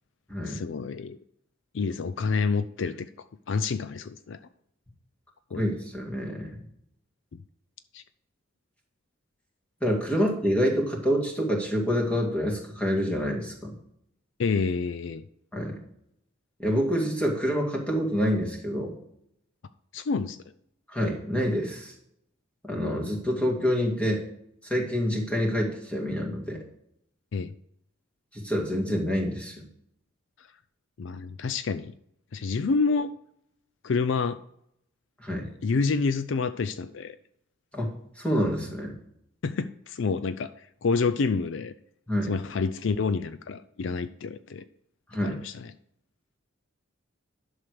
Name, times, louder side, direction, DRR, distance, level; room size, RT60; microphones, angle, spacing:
voice 1, 0.4-1.2 1.7-3.1 3.5-4.4 5.5-5.6 7.9-8.0 14.4-15.2 19.9-20.4 27.3-27.5 31.0-31.9 32.3-33.1 33.8-34.4 35.6-37.2 39.4-40.5 40.8-41.7 42.3-44.6 45.2-45.7, left 4 dB, 65° left, 13 dB, 0.4 m, -28 dB
voice 2, 5.5-6.6 9.8-13.7 15.5-15.8 16.6-18.9 20.9-21.9 22.6-24.2 24.7-26.6 28.3-29.7 35.2-35.5 37.7-37.9 38.2-39.0 42.1-42.3 45.1-45.4, equal, 5° left, -1 dB, 2.2 m, -27 dB
11.0 x 6.5 x 4.8 m, 0.73 s
head